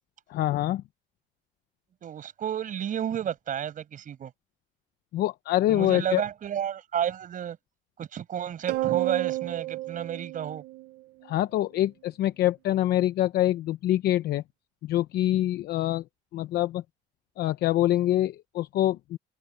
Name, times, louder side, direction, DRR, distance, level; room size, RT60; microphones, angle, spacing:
voice 1, 0.3-0.8 5.1-6.2 11.3-14.4 14.8-16.0 16.3-16.8 17.4-19.2, left 14 dB, 75° left, 0.8 m, -25 dB
voice 2, 2.0-4.3 5.7-7.6 8.0-10.6, right 9 dB, 50° right, 5.5 m, -31 dB
sound 1, 8.7-11.3, right 18 dB, 85° right, 0.8 m, -31 dB
cardioid pair, 110°, 17 cm